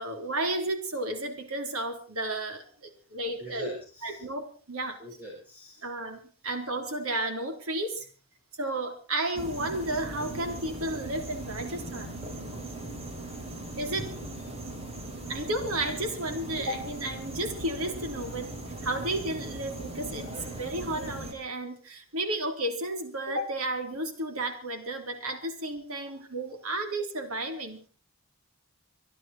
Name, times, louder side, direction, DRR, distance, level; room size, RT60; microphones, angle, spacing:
voice 1, 0.0-3.7 4.0-5.0 5.8-8.1 8.6-12.2 13.8-14.1 15.3-18.5 18.8-27.8, right 1 dB, 85° right, 6 dB, 3.8 m, -32 dB
voice 2, 3.4-4.2 5.0-5.9 14.0-14.2 26.0-26.1, right 1 dB, 10° right, -3 dB, 5.6 m, -44 dB
sound 1, 9.4-21.3, right 1 dB, 30° right, 3.9 m, -39 dB
25.5 x 11.0 x 4.5 m, 0.38 s
head